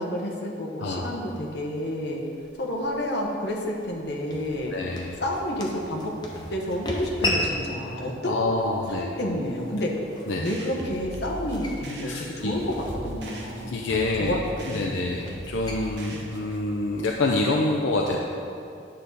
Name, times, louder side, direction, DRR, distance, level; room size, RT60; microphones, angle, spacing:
voice 1, 0.0-2.2 2.6-4.7 5.2-6.1 6.5-8.5 8.9-10.0 10.3-13.7 14.2-14.4 14.7-15.0, left 1 dB, 65° left, -1 dB, 1.2 m, -30 dB
voice 2, 0.8-1.1 4.7-5.2 8.2-9.1 10.3-10.5 12.0-12.5 13.7-14.4 14.6-18.2, left 2 dB, 85° left, -1 dB, 0.6 m, -27 dB
sound 1, 1.2-17.3, left 1 dB, 20° left, 0.9 m, -37 dB
sound 2, 10.5-16.6, right 1 dB, 70° right, 1.1 m, -40 dB
9.8 x 6.6 x 4.0 m, 2.6 s
head